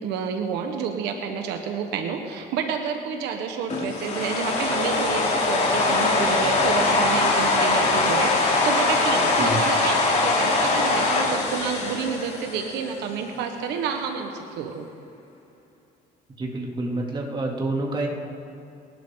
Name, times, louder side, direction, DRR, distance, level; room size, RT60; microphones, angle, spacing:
voice 1, 0.0-14.9, right 6 dB, 90° right, 4 dB, 1.4 m, -29 dB
sound 1, 3.7-12.9, left 3 dB, 40° left, 3.8 m, -22 dB
voice 2, 16.4-18.1, right 2 dB, 30° right, -1 dB, 2.9 m, -28 dB
29.0 x 12.0 x 3.9 m, 2.7 s
cardioid pair, 110°, 17 cm